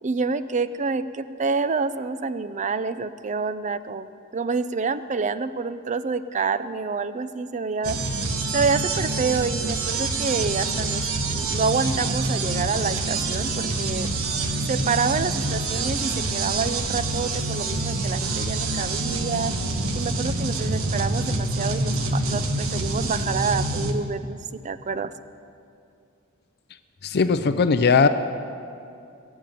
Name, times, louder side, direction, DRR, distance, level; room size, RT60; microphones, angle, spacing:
voice 1, 0.0-4.1 4.3-8.0 8.5-14.1 14.7-19.5 19.9-25.1, right 4 dB, 35° right, 13 dB, 0.5 m, -27 dB
sound 1, 7.8-23.9, right 2 dB, 75° right, 1.3 m, -26 dB
voice 2, 27.0-28.1, left 5 dB, 50° left, 10 dB, 0.5 m, -19 dB
21.0 x 7.2 x 9.2 m, 2.5 s
head